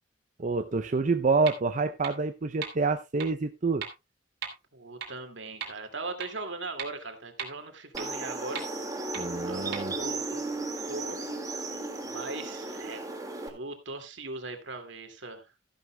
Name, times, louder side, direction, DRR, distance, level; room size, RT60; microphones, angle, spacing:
voice 1, 0.4-3.9 9.2-9.9, right 4 dB, 45° right, 0.5 m, -27 dB
sound 1, 1.5-1.6 2.0-2.1 2.6-2.7 3.2-3.3 3.8-3.9 4.4-4.5 5.0-5.1 5.6-5.7 6.2-6.3 6.8-6.9 7.4-7.5 8.0-8.1 8.5-8.6 9.1-9.2 9.7-9.8, right 7 dB, 60° right, 2.6 m, -35 dB
voice 2, 4.7-8.6 8.9-9.1 9.5-10.4 10.9-11.2 12.1-13.0 13.5-15.4, right 3 dB, 80° right, 2.3 m, -39 dB
sound 2, 7.9-13.5, right 2 dB, 20° right, 2.0 m, -35 dB
14.0 x 11.0 x 2.2 m
head